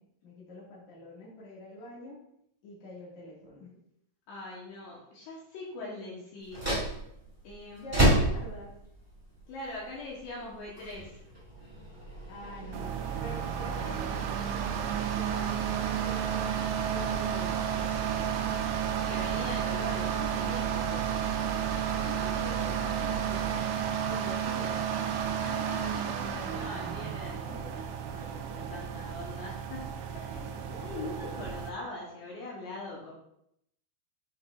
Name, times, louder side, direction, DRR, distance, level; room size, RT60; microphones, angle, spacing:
voice 1, 0.0-2.2 2.6-3.7 5.8-6.2 7.7-8.7 12.3-18.5 22.0-23.5 24.1-25.2 27.5-27.6 28.3-28.9 30.1-31.4, left 1 dB, 50° left, -6 dB, 2.4 m, -46 dB
voice 2, 4.3-6.7 7.4-8.2 9.5-11.1 19.1-21.5 25.4-30.0 30.8-33.1, left 2 dB, 75° left, -4 dB, 3.0 m, -42 dB
sound 1, 6.4-24.2, right 2 dB, 20° right, 0.4 m, -34 dB
sound 2, 12.7-31.7, right 8 dB, 80° right, 2.9 m, -32 dB
7.5 x 5.8 x 2.4 m, 0.75 s
omnidirectional pair, 5.5 m